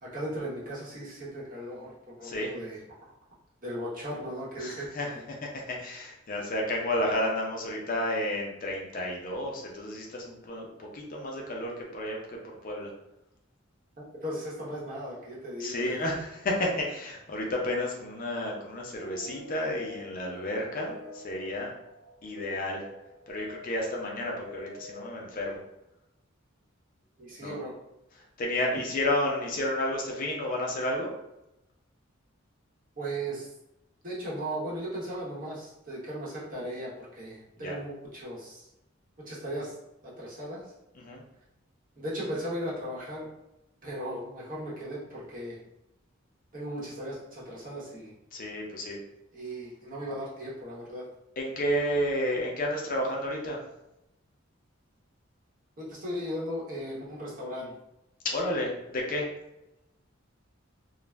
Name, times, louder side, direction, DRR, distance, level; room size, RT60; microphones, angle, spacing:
voice 1, 0.0-3.1 3.6-5.2 14.0-16.1 27.2-27.7 33.0-33.5 34.0-38.7 39.2-39.7 40.0-40.6 42.0-43.3 43.8-45.6 46.5-48.1 49.3-51.1 55.8-57.7, equal, 40° right, -6 dB, 0.9 m, -37 dB
voice 2, 2.2-2.5 4.6-12.2 12.4-12.9 15.6-21.7 22.2-22.9 23.3-25.6 27.4-27.5 28.4-31.1 37.6-37.7 40.9-41.2 48.3-49.0 51.4-53.6 58.2-59.3, left 1 dB, 40° left, -1 dB, 0.5 m, -31 dB
sound 1, 18.0-25.5, left 1 dB, 85° right, 1.0 m, -46 dB
2.3 x 2.0 x 3.2 m, 0.89 s
head